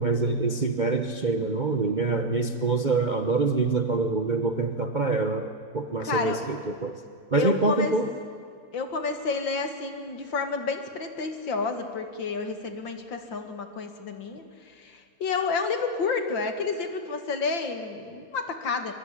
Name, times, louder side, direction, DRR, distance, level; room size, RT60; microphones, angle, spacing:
voice 1, 0.0-7.0 7.3-8.1, right 3 dB, 35° right, 6 dB, 0.8 m, -25 dB
voice 2, 6.0-6.4 7.3-8.0 8.7-18.9, left 4 dB, 70° left, 7 dB, 2.7 m, -30 dB
23.5 x 23.0 x 10.0 m, 2.1 s
omnidirectional pair, 2.2 m